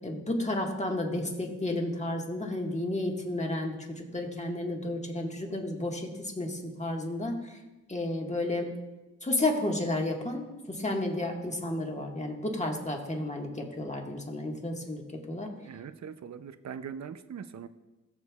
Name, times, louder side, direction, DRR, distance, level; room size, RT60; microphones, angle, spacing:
voice 1, 0.0-7.6 7.9-8.7 9.2-15.5, left 1 dB, 20° left, 1 dB, 1.6 m, -32 dB
voice 2, 15.6-17.7, right 7 dB, 50° right, 12 dB, 0.6 m, -41 dB
17.5 x 6.9 x 2.4 m, 1.1 s
cardioid pair, 60°, 35 cm